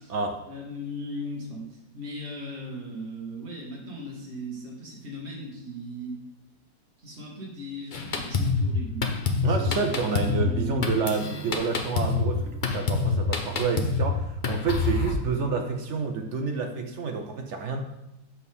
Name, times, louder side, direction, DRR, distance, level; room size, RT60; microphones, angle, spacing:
voice 1, 0.5-6.2 7.0-10.8, equal, 35° right, -4 dB, 2.0 m, -38 dB
Drum kit, 7.9-15.1, left 4 dB, 80° left, 0.4 m, -27 dB
voice 2, 9.4-17.8, right 4 dB, 65° right, 4 dB, 0.7 m, -29 dB
7.0 x 6.3 x 3.5 m, 0.92 s
omnidirectional pair, 1.9 m